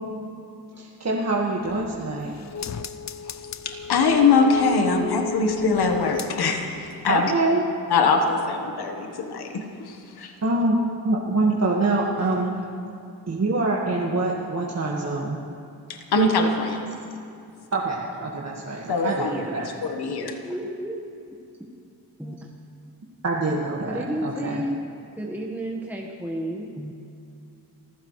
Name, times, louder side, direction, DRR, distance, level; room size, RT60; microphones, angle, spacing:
voice 1, 0.8-2.3 7.1-7.7 10.4-10.8 11.0-12.5 13.3-15.4 17.7-19.7 23.2-24.6, right 2 dB, 45° right, -4 dB, 1.8 m, -25 dB
sound 1, 1.6-6.8 7.1-7.2, left 6 dB, 45° left, 0.6 m, -34 dB
voice 2, 3.6-7.3 7.9-10.3 15.9-16.8 18.9-19.3 19.9-20.3, left 4 dB, 85° left, 4 dB, 1.4 m, -22 dB
voice 3, 19.0-19.7 20.4-21.0 22.2-22.5 23.9-24.8 25.2-26.9, equal, 5° right, -2 dB, 1.4 m, -32 dB
27.5 x 15.0 x 3.2 m, 2.6 s
cardioid pair, 90°, 38 cm